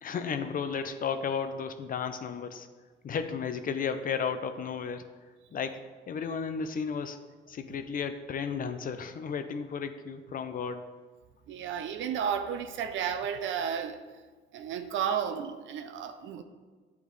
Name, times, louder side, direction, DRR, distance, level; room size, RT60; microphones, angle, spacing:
voice 1, 0.0-2.7 3.0-5.1 5.5-7.2 7.5-10.9, left 6 dB, 45° left, 9 dB, 0.5 m, -33 dB
voice 2, 11.5-14.0 14.5-16.4, right 8 dB, 75° right, 9 dB, 0.5 m, -32 dB
8.6 x 3.5 x 3.1 m, 1.4 s
cardioid pair, 90°, 20 cm